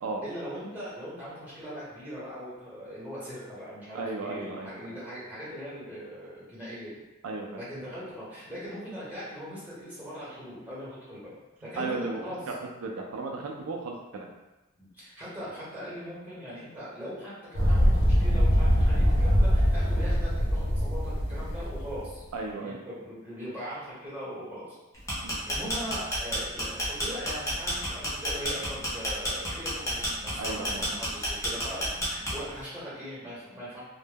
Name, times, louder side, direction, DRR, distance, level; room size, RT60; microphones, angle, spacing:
voice 1, 0.2-6.9 7.6-11.3 11.6-12.4 14.8-24.8 25.5-33.8, equal, 10° right, -9 dB, 1.1 m, -40 dB
voice 2, 3.9-5.0 7.2-7.6 11.8-12.2 12.5-12.6 12.8-14.3 22.3-22.8 25.2-25.4 30.4-30.9, right 3 dB, 85° right, 1 dB, 0.4 m, -35 dB
sound 1, 17.5-22.1, equal, 60° left, 0.6 m, -23 dB
sound 2, 24.9-32.6, equal, 15° left, 0.7 m, -30 dB
2.1 x 2.0 x 3.3 m, 1.0 s
head